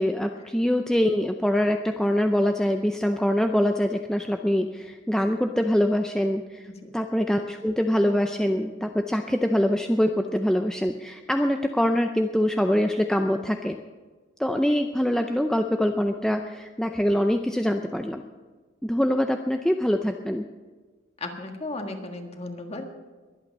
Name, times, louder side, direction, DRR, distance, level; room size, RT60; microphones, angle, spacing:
voice 1, 0.0-6.6 6.9-13.8 14.4-18.2 18.8-20.4, equal, 5° left, 5 dB, 0.5 m, -24 dB
voice 2, 21.2-22.9, left 2 dB, 30° left, 4 dB, 1.6 m, -35 dB
22.5 x 8.8 x 5.3 m, 1.4 s
head